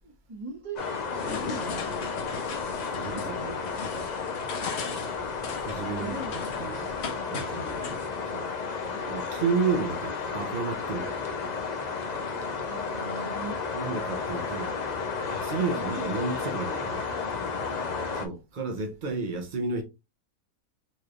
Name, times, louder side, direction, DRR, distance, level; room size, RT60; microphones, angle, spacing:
voice 1, 0.0-2.5 6.0-6.6 12.6-13.5 15.6-16.4 18.1-18.2, right 2 dB, 25° right, 0.9 m, -41 dB
sound 1, 0.8-18.3, left 5 dB, 75° left, 0.4 m, -33 dB
sound 2, 1.1-8.1, left 5 dB, 55° left, 0.9 m, -39 dB
voice 2, 2.9-3.8 5.6-6.9 7.3-8.5 9.1-11.1 13.7-14.8 15.4-17.0 18.1-19.8, right 4 dB, 45° right, 0.6 m, -32 dB
4.1 x 3.2 x 2.4 m
omnidirectional pair, 1.7 m